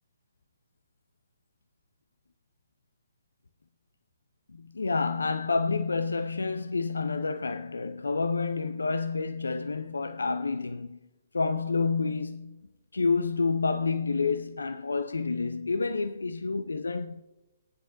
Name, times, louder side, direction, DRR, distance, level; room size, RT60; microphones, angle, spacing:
voice 1, 4.5-11.0 11.3-12.6 12.9-17.2, left 4 dB, 70° left, 0.6 m, -29 dB
24.0 x 10.0 x 2.6 m
figure-of-eight pair, 125°, 0 cm